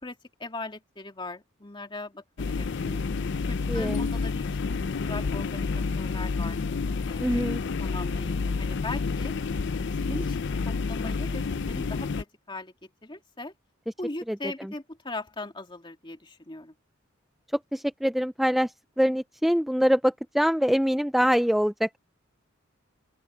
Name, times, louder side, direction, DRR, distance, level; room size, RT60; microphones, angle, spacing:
voice 1, 0.0-3.0 3.5-5.7 6.0-6.6 7.1-7.5 7.8-9.3 10.0-12.7 13.0-13.5 14.0-16.8, left 2 dB, 25° left, 2.5 m, -39 dB
sound 1, 2.4-12.2, left 4 dB, 60° left, 0.5 m, -29 dB
voice 2, 3.7-4.1 7.2-7.6 14.3-14.7 17.7-22.0, equal, ahead, 0.4 m, -24 dB
open air
head